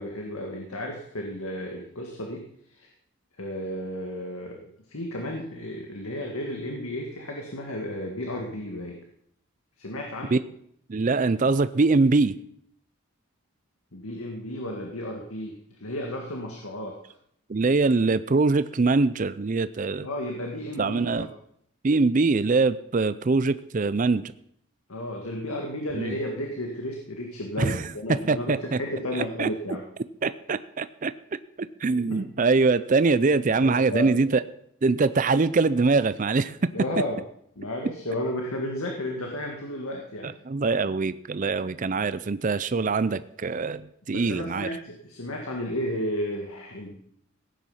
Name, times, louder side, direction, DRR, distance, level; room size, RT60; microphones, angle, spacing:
voice 1, 0.0-2.4 2.7-2.9 3.4-4.6 4.9-9.0 9.8-10.4 13.9-17.0 20.0-21.3 24.9-29.9 32.1-32.2 33.6-34.2 36.7-37.2 37.6-40.3 44.1-46.9, left 1 dB, 85° left, 1 dB, 2.0 m, -33 dB
voice 2, 10.9-12.4 17.5-20.1 20.8-21.3 21.8-24.3 25.9-26.2 27.6-27.8 28.1-28.8 29.1-29.5 30.2-31.1 31.6-34.4 34.8-36.6 40.2-44.7, right 3 dB, 35° right, 14 dB, 0.4 m, -23 dB
16.5 x 9.2 x 5.7 m, 0.69 s
head